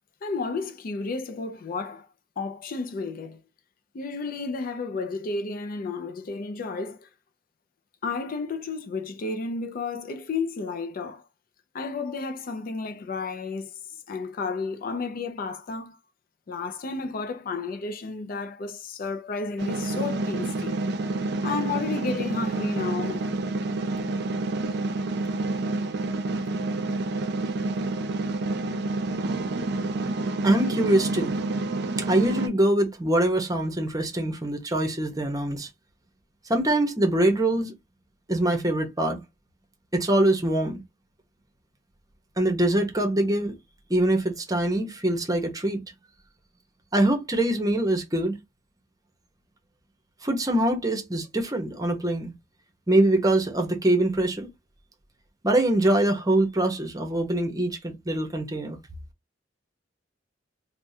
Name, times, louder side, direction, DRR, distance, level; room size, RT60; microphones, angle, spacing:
voice 1, 0.2-2.1 2.4-3.4 3.9-7.1 8.0-11.3 11.7-16.0 16.5-20.8 21.4-23.2, left 4 dB, 50° left, 0.4 m, -32 dB
sound 1, 19.6-32.5, right 2 dB, 60° right, 0.5 m, -28 dB
voice 2, 30.4-31.3 32.1-35.7 36.5-37.7 38.3-39.2 39.9-40.8 42.4-43.5 43.9-45.8 46.9-48.4 50.2-52.3 52.9-54.5 55.4-58.8, right 1 dB, 20° right, 0.8 m, -23 dB
3.5 x 2.1 x 2.7 m
head